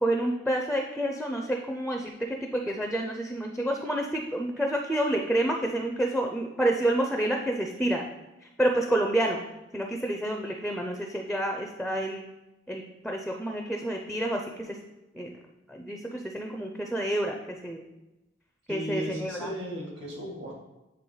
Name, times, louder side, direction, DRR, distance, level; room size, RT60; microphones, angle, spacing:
voice 1, 0.0-8.0 8.6-9.4 9.7-12.2 12.7-14.8 15.1-15.3 15.7-17.3 17.6-17.9 18.7-19.5, right 1 dB, ahead, 2 dB, 0.4 m, -29 dB
voice 2, 18.7-20.5, equal, 65° right, -4 dB, 2.2 m, -35 dB
8.4 x 3.3 x 3.8 m, 1.0 s
head